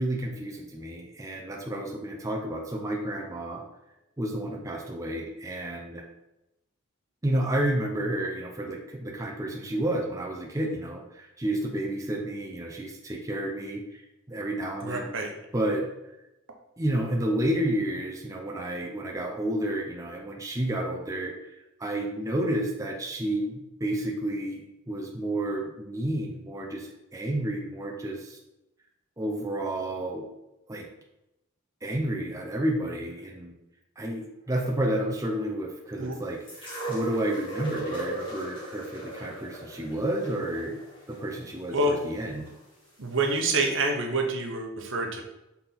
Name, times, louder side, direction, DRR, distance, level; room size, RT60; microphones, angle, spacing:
voice 1, 0.0-3.6 4.2-6.0 7.2-14.0 14.3-15.1 15.5-15.9 16.8-21.3 21.8-28.4 29.2-30.3 30.7-30.9 31.8-33.5 34.0-40.8 41.1-42.5, right 1 dB, 15° right, -1 dB, 0.7 m, -30 dB
voice 2, 14.8-15.3 36.0-36.2 41.7-42.0 43.0-45.2, right 2 dB, 65° right, 3 dB, 1.0 m, -27 dB
sound 1, 36.5-42.5 43.4-43.5, right 1 dB, 25° left, 2.2 m, -38 dB
5.9 x 4.3 x 4.0 m, 0.91 s
head